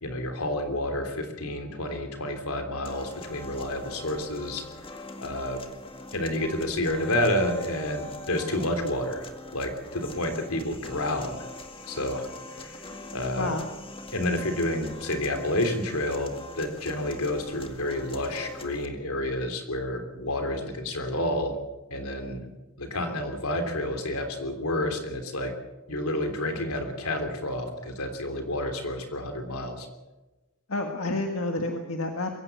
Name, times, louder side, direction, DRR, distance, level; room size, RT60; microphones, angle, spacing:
voice 1, 0.0-4.9 5.2-5.6 6.1-11.5 11.8-13.5 14.1-21.6 21.9-22.5 22.8-25.5 25.9-29.9, left 1 dB, 85° left, 6 dB, 3.3 m, -30 dB
sound 1, 2.9-18.9, left 2 dB, 25° left, 2.0 m, -43 dB
voice 2, 30.7-32.3, left 2 dB, 70° left, 4 dB, 1.7 m, -29 dB
22.5 x 16.0 x 8.3 m, 1.1 s
head